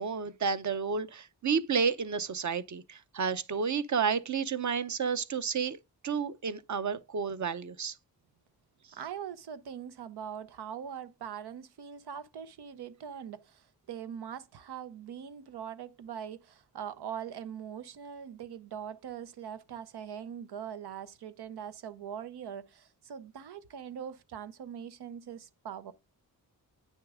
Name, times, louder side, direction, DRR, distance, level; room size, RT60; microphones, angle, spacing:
voice 1, 0.0-5.8 6.0-8.0, right 6 dB, 50° right, 0.8 m, -31 dB
voice 2, 8.9-25.9, right 8 dB, 90° right, 0.8 m, -42 dB
9.0 x 6.6 x 3.6 m
wide cardioid pair, 85°, 38 cm